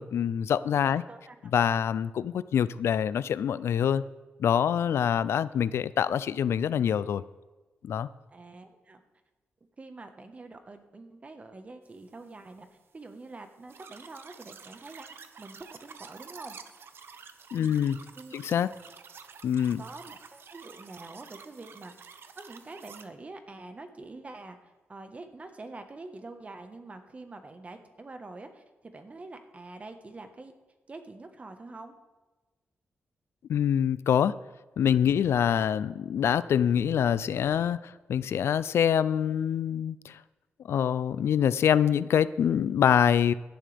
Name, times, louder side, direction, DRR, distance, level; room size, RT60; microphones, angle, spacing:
voice 1, 0.0-1.0 1.5-4.0 4.4-7.2 7.8-8.1 17.5-18.0 18.3-18.7 19.4-19.8 33.5-34.3 34.8-40.2 40.7-43.3, left 9 dB, 80° left, 17 dB, 0.4 m, -25 dB
voice 2, 0.8-1.5 8.3-9.0 9.8-12.7 12.9-16.6 17.5-18.3 19.6-30.5 30.9-31.9, right 3 dB, 30° right, 7 dB, 1.3 m, -46 dB
sound 1, 13.7-23.1, right 6 dB, 60° right, 0.9 m, -49 dB
16.5 x 11.5 x 3.5 m, 1.2 s
wide cardioid pair, 110°, 4 cm